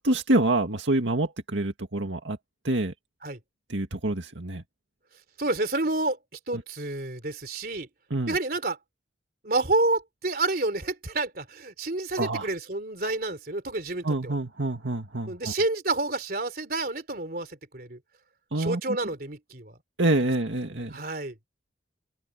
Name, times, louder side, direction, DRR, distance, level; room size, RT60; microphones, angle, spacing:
voice 1, 0.0-2.4 2.6-2.9 3.7-4.6 6.5-6.6 8.1-8.4 12.2-12.5 14.0-15.5 18.5-18.8 20.0-21.0, right 2 dB, 80° right, 2.0 m, -26 dB
voice 2, 5.4-6.2 6.5-7.9 8.3-8.8 9.4-14.3 15.3-18.0 18.6-19.8 20.8-21.4, right 2 dB, 50° right, 3.6 m, -29 dB
open air
head